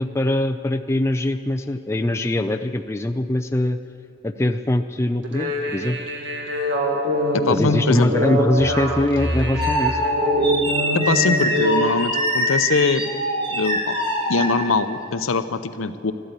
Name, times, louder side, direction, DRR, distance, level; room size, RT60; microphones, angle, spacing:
voice 1, 0.0-3.8 4.2-6.0 7.5-10.0, left 1 dB, 15° left, 6 dB, 0.3 m, -22 dB
sound 1, 5.2-11.9, equal, 60° right, 1.7 m, -24 dB
voice 2, 7.3-8.1 10.9-13.1 13.5-14.0 14.3-16.1, left 4 dB, 75° left, 11 dB, 0.7 m, -22 dB
sound 2, 8.6-15.0, equal, 25° right, 3.2 m, -24 dB
12.5 x 12.5 x 8.2 m, 2.5 s
head